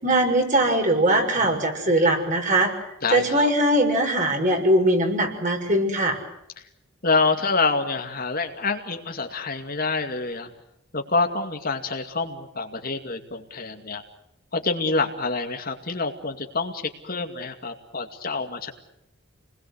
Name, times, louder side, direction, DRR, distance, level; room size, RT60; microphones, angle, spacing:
voice 1, 0.0-2.7 3.1-6.2, right 1 dB, 40° right, 3 dB, 6.3 m, -21 dB
voice 2, 3.0-3.5 7.0-10.5 10.9-14.0 14.5-18.7, left 3 dB, 45° left, 5 dB, 2.4 m, -27 dB
29.5 x 21.0 x 8.1 m, 0.83 s
head